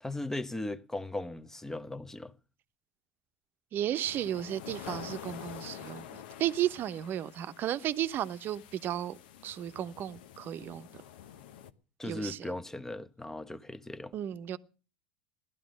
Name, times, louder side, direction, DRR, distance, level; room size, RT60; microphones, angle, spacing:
voice 1, 0.0-2.3 12.0-14.1, left 2 dB, 10° left, 1.0 m, -38 dB
voice 2, 3.7-9.2 9.4-10.9 12.0-12.4 14.1-14.6, right 11 dB, 45° right, 0.9 m, -34 dB
sound 1, 4.0-11.7, left 10 dB, 75° left, 1.0 m, -47 dB
16.0 x 11.5 x 6.4 m
hypercardioid pair, 85°, 5 cm